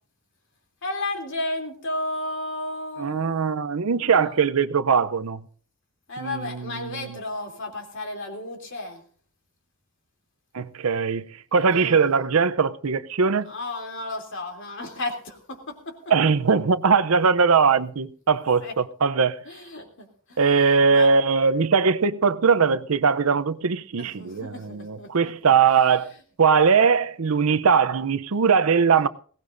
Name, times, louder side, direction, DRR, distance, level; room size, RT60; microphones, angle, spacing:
voice 1, 0.8-3.6 4.0-4.4 6.1-9.0 11.6-12.0 13.4-15.9 18.4-18.7 19.4-21.1 24.0-25.1 25.4-25.5, left 2 dB, 60° left, 3.1 m, -33 dB
voice 2, 3.0-5.4 6.2-7.2 10.5-11.2 11.5-13.5 16.1-19.4 20.4-26.1 26.4-29.1, right 5 dB, 75° right, 0.7 m, -20 dB
21.0 x 17.5 x 2.6 m
head